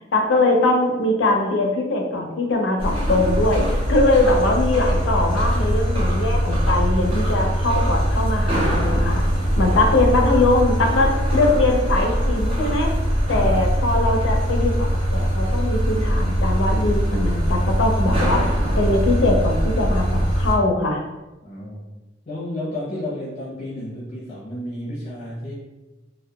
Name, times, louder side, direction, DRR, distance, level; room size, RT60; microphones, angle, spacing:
voice 1, 0.1-9.2 9.6-12.9 13.3-18.4 18.8-21.0, left 2 dB, 90° left, 2 dB, 0.5 m, -21 dB
sound 1, 2.8-20.5, equal, 30° right, 0.5 m, -21 dB
voice 2, 21.4-21.8 22.2-25.5, left 1 dB, 35° left, -7 dB, 0.5 m, -32 dB
2.7 x 2.1 x 2.2 m, 1.0 s
head